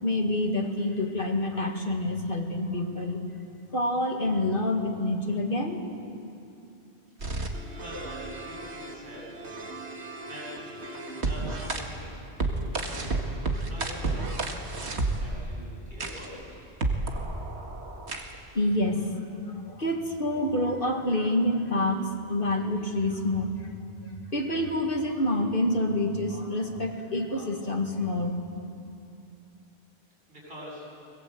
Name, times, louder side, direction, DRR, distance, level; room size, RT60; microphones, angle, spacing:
voice 1, 0.0-3.2 3.7-5.8 18.5-23.7 24.3-28.4, left 1 dB, 55° left, 3 dB, 2.4 m, -27 dB
sound 1, 7.2-11.8 12.4-15.4 16.0-16.3 16.8-18.4, right 3 dB, 85° right, 2.2 m, -32 dB
voice 2, 7.8-9.4 10.2-14.0 14.7-16.4 30.3-30.9, equal, 60° right, -4 dB, 8.5 m, -44 dB
25.0 x 20.5 x 8.0 m, 2.6 s
omnidirectional pair, 1.1 m